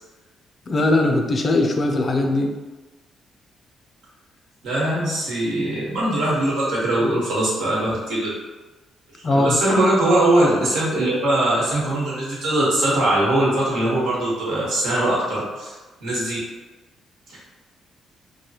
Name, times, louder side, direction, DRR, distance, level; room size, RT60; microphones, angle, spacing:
voice 1, 0.7-2.5 9.2-9.6, left 2 dB, 40° left, 2 dB, 0.4 m, -20 dB
voice 2, 4.6-8.3 9.3-15.7 16.0-16.4, right 1 dB, 85° right, -7 dB, 1.3 m, -21 dB
3.2 x 2.1 x 2.8 m, 1.2 s
cardioid pair, 90°, 0 cm